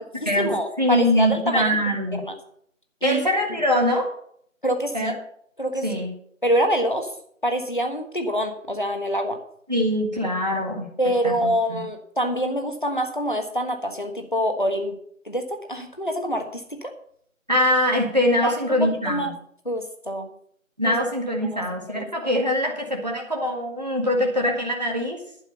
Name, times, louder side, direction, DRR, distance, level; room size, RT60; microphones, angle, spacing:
voice 1, 0.1-1.8 2.1-2.4 3.0-3.2 4.6-5.1 5.6-6.0 6.4-7.1 7.4-9.4 11.0-15.0 15.2-16.9 18.4-19.3 19.6-20.3 20.8-20.9 21.4-21.6 21.9-22.3, equal, 40° left, 5 dB, 1.4 m, -26 dB
voice 2, 0.8-2.2 3.0-4.1 4.9-5.1 5.8-6.1 9.7-10.9 11.2-11.8 17.5-19.2 20.8-25.2, equal, 30° right, 0 dB, 1.7 m, -23 dB
11.5 x 6.2 x 7.1 m, 0.66 s
figure-of-eight pair, 175°, 40 cm